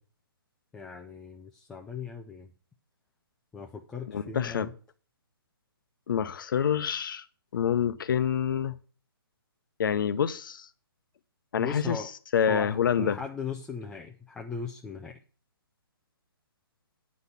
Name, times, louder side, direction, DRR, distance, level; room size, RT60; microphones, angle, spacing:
voice 1, 0.7-2.5 3.5-4.7 11.6-12.1 12.5-15.2, left 5 dB, 5° left, 0.3 m, -38 dB
voice 2, 4.1-4.7 6.1-7.2 7.5-8.7 9.8-10.7 11.5-12.0 12.3-13.2, left 8 dB, 60° left, 0.8 m, -27 dB
9.6 x 4.2 x 6.9 m
hypercardioid pair, 155°, 13 cm